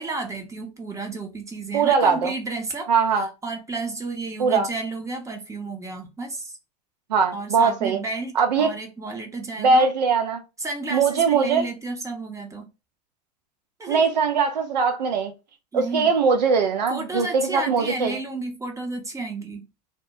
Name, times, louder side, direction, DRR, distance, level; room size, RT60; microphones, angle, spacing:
voice 1, 0.0-2.9 3.2-6.6 7.3-9.9 10.6-12.6 13.8-14.2 15.7-16.1 16.9-19.6, right 3 dB, 15° right, 0.6 m, -32 dB
voice 2, 1.7-2.3 2.9-3.3 4.4-4.7 7.1-8.0 8.3-8.7 9.6-10.4 10.9-11.6 13.9-15.3 15.7-18.2, right 5 dB, 85° right, 0.6 m, -21 dB
2.1 x 2.1 x 2.7 m
hypercardioid pair, 95°, 21 cm